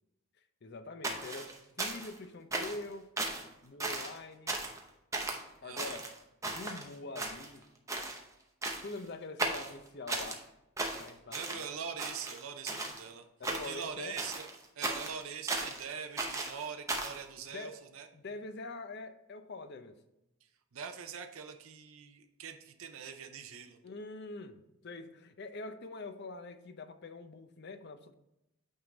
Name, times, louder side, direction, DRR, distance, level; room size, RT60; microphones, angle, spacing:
voice 1, 0.6-3.1 3.6-4.6 5.6-6.0 6.4-7.7 8.8-10.4 10.9-11.7 13.4-14.2 17.4-17.8 18.1-20.0 23.8-28.1, left 3 dB, 50° left, 10 dB, 0.5 m, -44 dB
sound 1, 1.0-2.2 2.5-2.9 3.2-3.5 3.8-4.2 4.5-4.8 5.1-5.4 5.8-6.8 7.1-7.6 7.9-8.2 8.6-9.0 9.4-10.4 10.8-11.7 12.0-13.0 13.4-13.9 14.2-15.8 16.2-17.2, right 2 dB, 15° right, 0.7 m, -36 dB
voice 2, 5.6-6.0 11.3-13.2 13.6-14.5 14.8-18.1 20.7-23.8, right 7 dB, 65° right, 6 dB, 0.6 m, -43 dB
8.9 x 3.6 x 3.9 m, 0.90 s
head